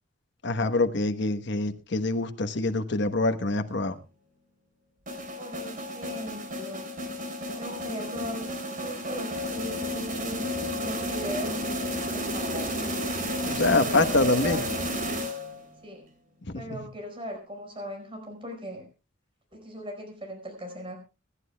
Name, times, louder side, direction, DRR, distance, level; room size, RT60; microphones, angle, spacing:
voice 1, 0.4-4.0 13.4-14.6 16.5-16.6, left 2 dB, 65° left, 1.2 m, -25 dB
sound 1, 5.1-15.7, equal, 45° right, 3.4 m, -32 dB
voice 2, 5.4-6.9 7.6-8.5 8.8-10.5 10.8-11.7 12.1-12.8 13.7-14.9 15.8-16.0 16.5-18.8 19.5-21.0, equal, 30° right, 5.0 m, -38 dB
25.0 x 11.5 x 2.2 m
head